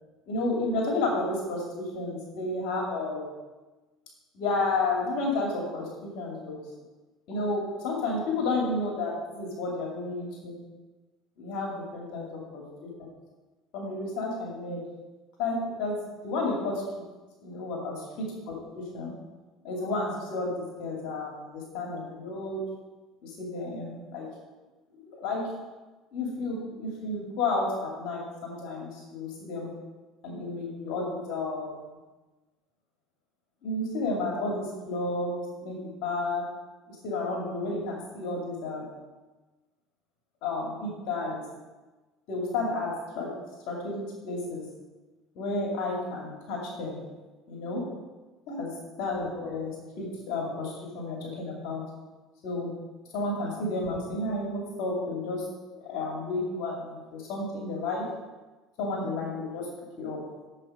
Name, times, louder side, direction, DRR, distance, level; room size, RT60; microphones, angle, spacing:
voice 1, 0.3-3.3 4.3-6.6 7.3-10.6 11.4-12.2 12.5-13.1 13.7-14.8 15.4-16.8 17.4-19.1 19.6-22.6 23.2-24.3 25.2-25.4 26.1-29.7 30.2-31.8 33.6-36.4 36.9-38.9 40.4-41.4 42.3-43.3 43.7-44.6 45.3-47.0 47.5-47.8 48.5-48.7 49.0-51.8 52.4-52.7 53.1-55.5 55.8-58.0 58.8-59.7 60.0-60.2, left 2 dB, 70° left, -2 dB, 2.6 m, -31 dB
7.5 x 7.5 x 5.1 m, 1.2 s
supercardioid pair, 110°, 0 cm